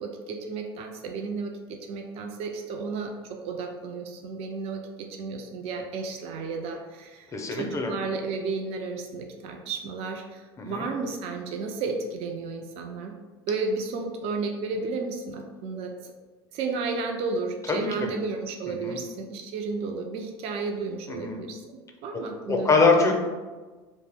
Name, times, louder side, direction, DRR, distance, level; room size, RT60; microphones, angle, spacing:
voice 1, 0.0-13.1 13.5-15.9 16.5-22.8, right 4 dB, 50° right, 3 dB, 0.4 m, -33 dB
voice 2, 7.3-7.9 10.6-10.9 17.7-18.1 18.7-19.0 21.1-21.4 22.5-23.1, left 4 dB, 25° left, 2 dB, 0.5 m, -24 dB
2.4 x 2.0 x 3.4 m, 1.3 s
hypercardioid pair, 85°, 13 cm